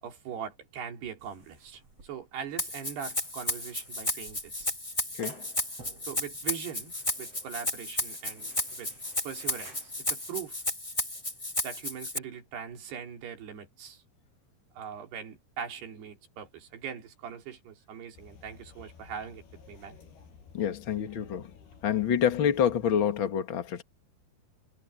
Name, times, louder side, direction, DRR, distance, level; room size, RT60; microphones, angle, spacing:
voice 1, 0.0-4.7 6.0-6.9 7.2-8.9 9.3-10.6 11.6-14.0 14.8-20.0, right 8 dB, 80° right, 5.4 m, -41 dB
sound 1, 1.2-10.4, right 2 dB, 35° right, 8.7 m, -55 dB
Rattle (instrument), 2.6-12.2, left 1 dB, 15° left, 1.3 m, -33 dB
sound 2, 18.1-23.3, left 5 dB, 75° left, 6.9 m, -53 dB
voice 2, 20.5-21.5 21.8-23.8, left 8 dB, 40° left, 2.0 m, -27 dB
omnidirectional pair, 4.6 m